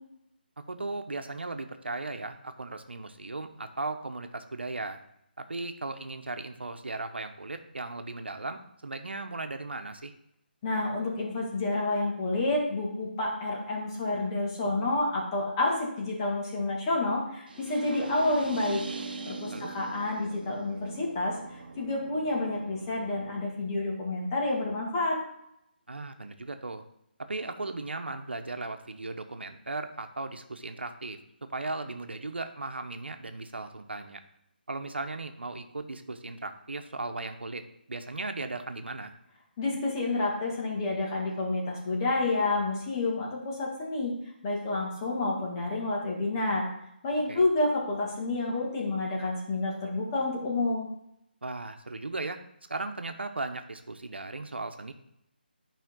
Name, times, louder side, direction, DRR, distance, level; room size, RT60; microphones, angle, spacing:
voice 1, 0.7-5.0 5.4-10.1 19.5-19.7 25.9-26.8 27.3-31.2 31.5-34.2 34.7-37.6 37.9-39.1 47.3-47.5 51.4-52.4 52.7-54.9, right 2 dB, 90° right, 7 dB, 1.0 m, -37 dB
voice 2, 10.6-18.8 19.3-25.2 39.6-44.1 44.4-46.7 47.0-50.9, left 2 dB, 25° left, -3 dB, 2.1 m, -29 dB
sound 1, 17.5-23.5, right 3 dB, 60° right, 1.1 m, -41 dB
11.5 x 5.1 x 3.8 m, 0.77 s
figure-of-eight pair, 160°, 6 cm